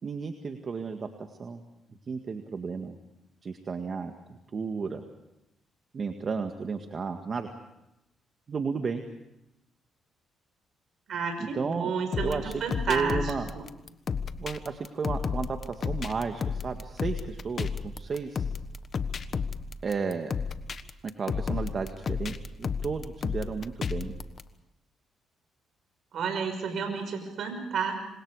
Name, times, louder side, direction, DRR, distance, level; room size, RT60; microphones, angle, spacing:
voice 1, 0.0-1.6 2.1-3.0 3.4-4.1 4.5-5.0 5.9-7.5 8.5-9.0 11.5-11.9 12.2-12.6 12.9-13.5 14.4-18.4 19.8-20.3 21.0-24.2, right 5 dB, 45° right, 5 dB, 1.9 m, -33 dB
voice 2, 11.1-13.6 26.1-28.0, right 5 dB, 65° right, 5 dB, 5.6 m, -31 dB
sound 1, 12.1-24.4, left 5 dB, 45° left, 1.3 m, -32 dB
28.0 x 25.5 x 5.0 m, 0.91 s
cardioid pair, 90°, 0 cm